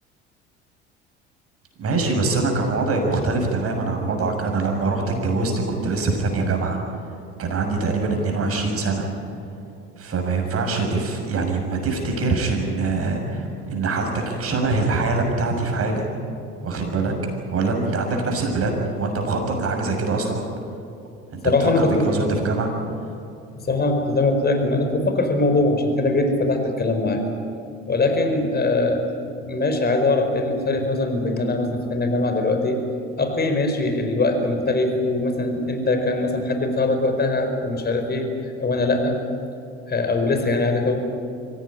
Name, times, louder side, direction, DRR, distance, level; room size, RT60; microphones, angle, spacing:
voice 1, 1.8-6.8 7.4-9.0 10.0-16.1 16.6-17.1 17.5-20.5 21.3-21.4 21.8-22.7, right 3 dB, 45° right, 3 dB, 6.6 m, -23 dB
voice 2, 21.4-22.1 23.7-27.2 27.9-29.0 29.4-32.8 33.2-38.3 38.6-39.2 39.9-41.0, left 2 dB, 30° left, 5 dB, 5.0 m, -21 dB
24.5 x 17.0 x 10.0 m, 2.6 s
hypercardioid pair, 70°, 33 cm